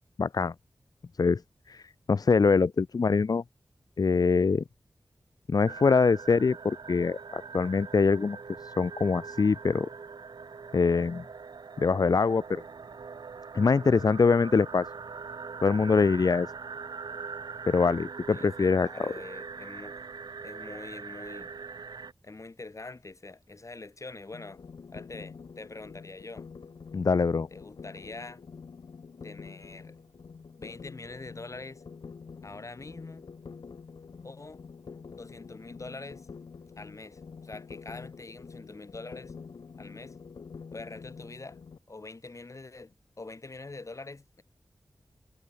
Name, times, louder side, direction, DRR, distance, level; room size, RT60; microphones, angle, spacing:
voice 1, 0.2-0.5 1.2-1.4 1.7-3.4 4.0-4.6 5.5-9.9 10.7-11.2 11.8-12.6 13.5-14.9 15.6-16.5 17.7-18.9 26.9-27.5, left 4 dB, 65° left, 0.8 m, -24 dB
sound 1, 5.7-22.1, right 5 dB, 85° right, 2.9 m, -42 dB
voice 2, 18.3-20.0 20.4-21.5 22.2-24.6 24.9-26.5 27.5-28.4 29.2-30.0 30.6-31.8 32.4-33.3 34.2-34.6 35.1-36.3 36.8-39.3 39.8-40.2 40.7-41.6 41.9-44.4, left 3 dB, 50° left, 6.5 m, -44 dB
sound 2, 24.3-41.8, left 5 dB, 90° left, 6.2 m, -47 dB
cardioid pair, 50°, 7 cm